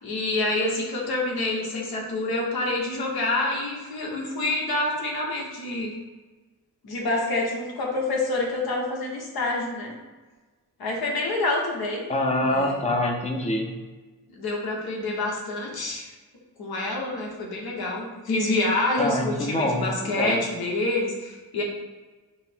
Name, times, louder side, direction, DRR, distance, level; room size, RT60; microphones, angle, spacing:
voice 1, 0.0-5.9 6.8-9.9 10.8-12.0 12.4-12.8 14.3-16.1 16.6-21.6, left 2 dB, 75° left, -1 dB, 1.2 m, -27 dB
voice 2, 12.1-13.7 19.0-20.4, left 1 dB, 20° left, 2 dB, 0.6 m, -25 dB
5.1 x 2.1 x 4.4 m, 1.3 s
wide cardioid pair, 135°, 38 cm